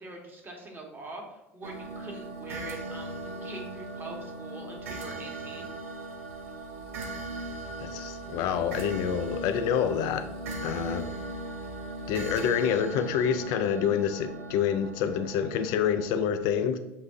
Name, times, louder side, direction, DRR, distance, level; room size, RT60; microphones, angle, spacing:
voice 1, 0.0-5.7, right 2 dB, 30° right, 1 dB, 1.2 m, -43 dB
sound 1, 1.6-16.2, right 2 dB, 85° right, 0.6 m, -38 dB
voice 2, 7.8-10.3 10.6-11.0 12.1-16.8, left 8 dB, 60° left, 8 dB, 0.3 m, -27 dB
6.8 x 2.6 x 2.6 m, 0.96 s
hypercardioid pair, 75°, 7 cm